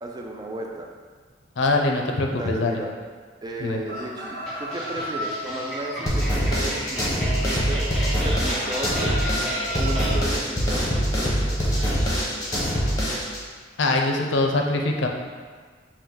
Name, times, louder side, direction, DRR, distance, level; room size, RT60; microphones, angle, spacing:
voice 1, 0.0-0.9 2.3-2.9 3.4-7.9 8.2-9.1 9.7-12.4, right 1 dB, 25° right, 1 dB, 0.5 m, -34 dB
voice 2, 1.6-2.8 3.6-3.8 13.8-15.1, left 2 dB, 75° left, 2 dB, 0.6 m, -23 dB
sound 1, 3.8-6.1 8.2-10.2, equal, 55° right, 1.4 m, -34 dB
sound 2, 4.5-10.2, right 1 dB, ahead, 1.1 m, -33 dB
sound 3, 6.1-13.4, equal, 20° left, 0.8 m, -24 dB
5.3 x 2.6 x 3.7 m, 1.5 s
head